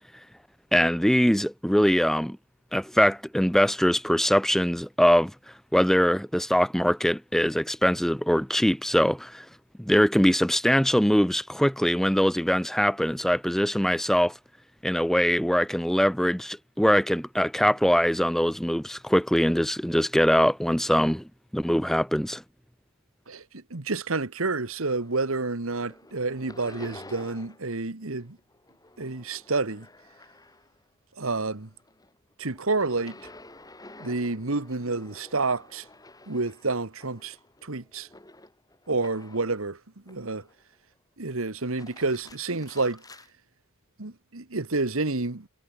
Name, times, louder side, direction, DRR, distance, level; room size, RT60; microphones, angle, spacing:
voice 1, 0.7-2.4 2.7-5.3 5.7-9.4 9.8-14.3 14.8-21.2 21.5-22.4, equal, ahead, 0.7 m, -22 dB
voice 2, 23.3-28.4 29.0-29.9 31.2-31.7 32.4-33.2 34.0-35.8 36.3-37.3 37.6-38.1 38.9-39.8 40.1-40.4 41.2-43.0 44.0-45.5, right 3 dB, 70° right, 1.5 m, -29 dB
vitamin shaker, 24.7-25.4 25.7-27.7 28.0-30.9 31.3-39.6 40.1-40.8 41.6-43.3, left 2 dB, 15° left, 4.5 m, -50 dB
head